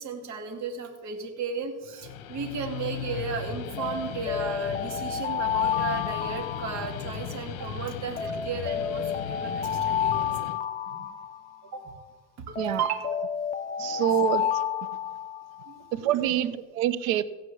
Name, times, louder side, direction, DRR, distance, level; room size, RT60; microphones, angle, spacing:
voice 1, 0.0-10.5 10.9-11.1 11.7-11.9 12.5-13.1 13.8-14.1 15.7-16.3, right 5 dB, 45° right, 2 dB, 2.4 m, -35 dB
Guitar, 1.9-10.6, left 8 dB, 60° left, 1.2 m, -37 dB
Alarm, 3.8-7.5 8.2-11.9 12.5-15.8, left 8 dB, 20° left, 0.7 m, -30 dB
voice 2, 12.6-12.9 13.8-14.5 15.9-17.2, right 11 dB, 80° right, 13 dB, 0.9 m, -26 dB
15.5 x 5.2 x 8.5 m, 1.3 s
supercardioid pair, 120°, 39 cm